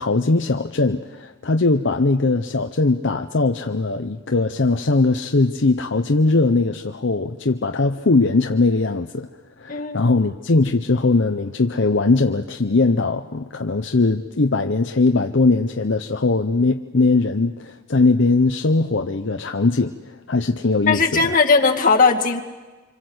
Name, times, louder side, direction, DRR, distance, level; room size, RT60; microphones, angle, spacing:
voice 1, 0.0-9.3 9.6-21.4, left 3 dB, 65° left, 6 dB, 0.8 m, -20 dB
voice 2, 9.7-10.0 20.9-22.4, left 4 dB, 45° left, 2 dB, 2.2 m, -17 dB
27.5 x 25.5 x 8.0 m, 1.3 s
head